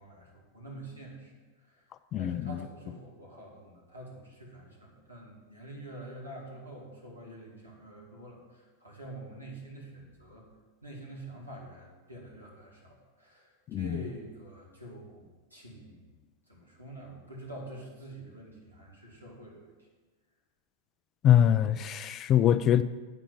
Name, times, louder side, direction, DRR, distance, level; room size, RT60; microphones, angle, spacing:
voice 1, 0.0-1.3 1.6-1.9 2.2-10.5 10.8-16.2 16.5-19.9, right 1 dB, 85° right, 2.5 m, -46 dB
voice 2, 2.1-2.6 13.7-14.0 21.2-22.8, left 10 dB, 30° left, 0.4 m, -23 dB
10.0 x 5.0 x 7.0 m
figure-of-eight pair, 90°, 0 cm